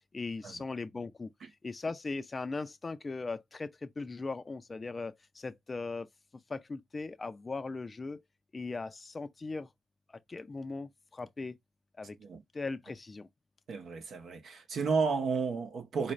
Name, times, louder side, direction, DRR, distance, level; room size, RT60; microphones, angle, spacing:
voice 1, 0.1-1.3 1.6-6.1 6.5-8.2 8.5-9.7 10.1-11.6 12.0-12.2 12.5-13.3, left 3 dB, 25° left, 0.5 m, -39 dB
voice 2, 13.7-16.1, right 5 dB, 60° right, 0.8 m, -32 dB
4.3 x 2.5 x 3.1 m
cardioid pair, 90°, 0 cm